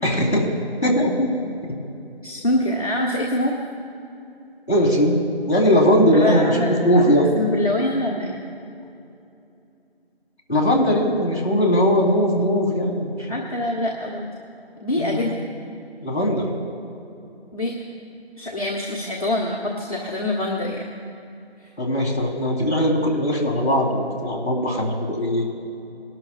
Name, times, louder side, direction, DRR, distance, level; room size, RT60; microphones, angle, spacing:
voice 1, 0.0-0.5 0.8-1.3 4.7-5.2 5.5-7.3 10.5-13.3 15.0-15.4 16.0-16.5 21.8-25.5, equal, 15° left, -12 dB, 2.7 m, -19 dB
voice 2, 2.2-3.6 6.1-8.3 13.2-14.3 14.8-15.4 17.5-17.8 18.4-20.8, left 1 dB, 35° left, -7 dB, 1.4 m, -25 dB
22.5 x 12.5 x 2.5 m, 2.7 s
figure-of-eight pair, 180°, 32 cm